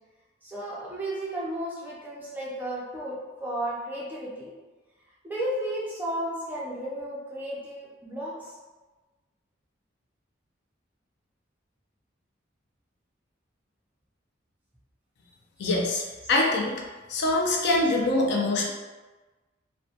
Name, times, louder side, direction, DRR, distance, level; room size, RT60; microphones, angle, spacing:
voice 1, 0.4-4.5 5.2-8.6, right 1 dB, 10° right, -7 dB, 0.4 m, -33 dB
voice 2, 15.6-16.0 16.3-16.8 17.1-18.7, left 2 dB, 55° left, -1 dB, 0.3 m, -24 dB
2.2 x 2.1 x 2.7 m, 1.2 s
head